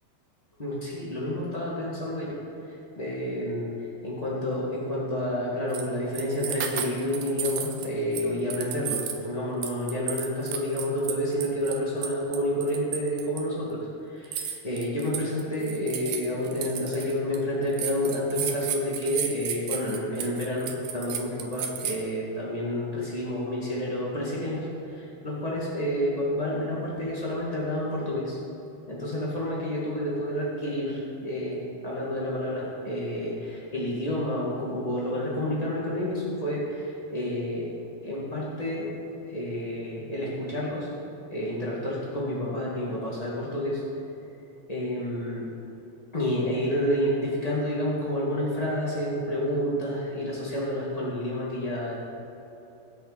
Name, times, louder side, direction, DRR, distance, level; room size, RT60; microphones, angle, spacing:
voice 1, 0.6-2.4 2.6-3.7 4.0-28.4 28.9-37.7 38.0-38.9 39.3-40.9 41.3-43.8 44.7-45.5 46.1-52.0, left 1 dB, 45° left, -6 dB, 0.5 m, -29 dB
sound 1, 5.7-5.9 6.1-7.9 8.1-9.3 9.6-13.4 14.2-17.4 17.7-22.0, right 9 dB, 70° right, 2.5 m, -33 dB
23.5 x 8.2 x 4.2 m, 2.9 s
omnidirectional pair, 4.8 m